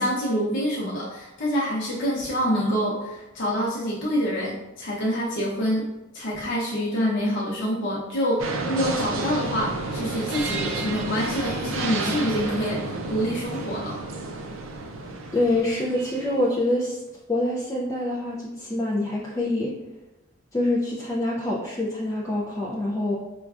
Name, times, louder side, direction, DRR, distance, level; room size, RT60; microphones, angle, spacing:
voice 1, 0.0-5.9 6.1-14.0, equal, 60° left, -7 dB, 0.7 m, -26 dB
sound 1, 8.4-16.4, right 3 dB, 85° right, 0.5 m, -31 dB
voice 2, 15.3-17.0 17.3-19.7 20.5-23.2, left 1 dB, 15° left, -5 dB, 0.4 m, -25 dB
5.1 x 2.3 x 2.4 m, 1.0 s
head